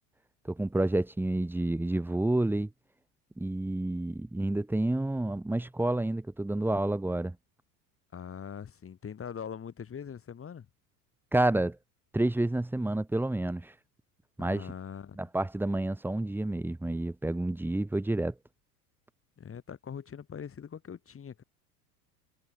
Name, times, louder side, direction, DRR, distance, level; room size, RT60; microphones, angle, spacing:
voice 1, 0.4-2.7 3.4-7.4 11.3-11.8 12.1-13.7 14.4-14.7 15.2-18.3, right 1 dB, 5° right, 1.0 m, -29 dB
voice 2, 8.1-10.7 14.4-15.2 19.4-21.4, left 7 dB, 30° left, 4.8 m, -42 dB
hypercardioid pair, 85°, 45 cm